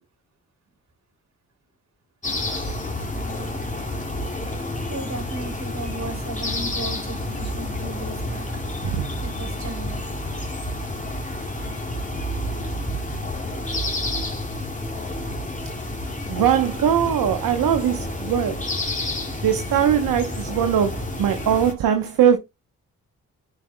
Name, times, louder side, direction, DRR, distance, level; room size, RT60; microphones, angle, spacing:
sound 1, 2.2-21.7, left 1 dB, 20° left, 2.2 m, -29 dB
voice 1, 4.9-8.5 9.2-10.0 11.2-11.4, right 2 dB, 45° right, 2.8 m, -35 dB
voice 2, 16.3-18.7 19.4-22.4, right 9 dB, 65° right, 0.9 m, -21 dB
9.7 x 4.8 x 2.2 m
hypercardioid pair, 45°, 37 cm